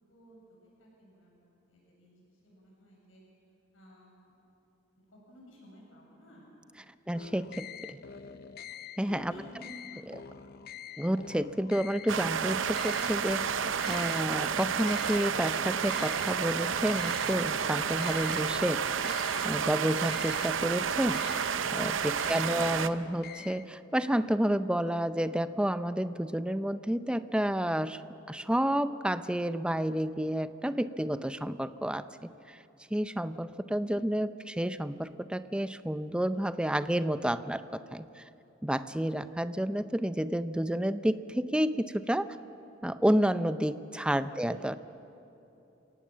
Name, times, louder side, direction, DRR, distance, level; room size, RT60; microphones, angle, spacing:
voice 1, 0.1-3.2 3.7-4.4 4.9-6.5 7.0-7.8 8.1-8.9 9.3-10.3 10.6-10.9 44.4-44.6, equal, 90° left, -3 dB, 7.9 m, -55 dB
sound 1, 7.1-23.8, left 7 dB, 55° left, 0.6 m, -46 dB
voice 2, 7.1-7.7 9.0-9.3 10.1-10.2 11.0-13.5 13.9-18.9 19.4-21.3 21.7-28.0 28.3-32.6 32.9-38.2 38.6-42.3 42.8-44.7, equal, 5° right, 12 dB, 0.5 m, -30 dB
sound 2, 12.1-22.9, right 7 dB, 75° right, 0.7 m, -31 dB
28.5 x 17.5 x 7.5 m, 2.9 s
head